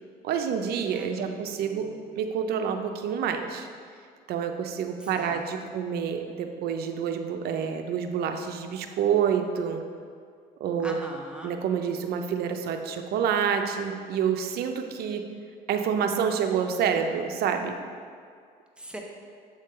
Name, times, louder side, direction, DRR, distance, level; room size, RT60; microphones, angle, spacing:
voice 1, 0.2-1.9 2.2-3.7 4.3-9.8 10.6-10.9 11.4-15.2 15.7-17.8, right 7 dB, 70° right, 6 dB, 0.6 m, -28 dB
voice 2, 0.9-2.2 5.0-5.4 5.7-5.8 10.8-11.6 18.8-19.0, right 1 dB, 5° right, 0 dB, 0.7 m, -42 dB
7.5 x 3.7 x 4.3 m, 2.1 s
cardioid pair, 110°, 17 cm